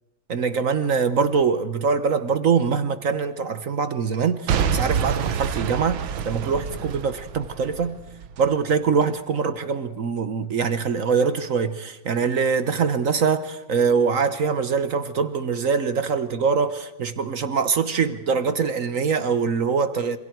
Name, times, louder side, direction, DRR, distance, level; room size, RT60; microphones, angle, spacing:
voice 1, 0.3-8.0 8.4-20.2, right 5 dB, 50° right, 1.2 m, -23 dB
Boom / Shatter / Crushing, 4.5-8.5 9.0-9.1, right 7 dB, 75° right, 1.7 m, -27 dB
27.5 x 26.0 x 4.6 m
omnidirectional pair, 2.2 m